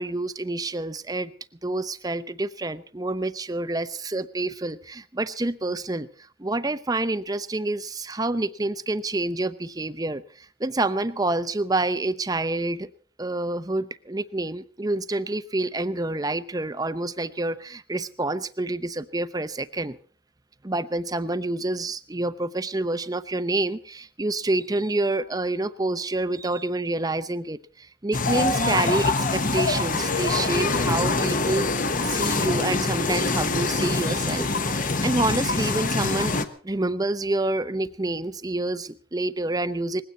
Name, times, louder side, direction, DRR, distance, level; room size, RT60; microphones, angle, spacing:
voice 1, 0.0-1.3 1.6-12.9 13.2-20.0 20.6-31.7 32.0-36.4 36.6-40.0, right 2 dB, 20° right, 13 dB, 0.7 m, -28 dB
sound 1, 28.1-36.5, left 3 dB, 40° left, 1.1 m, -24 dB
20.0 x 16.5 x 4.2 m, 0.43 s
head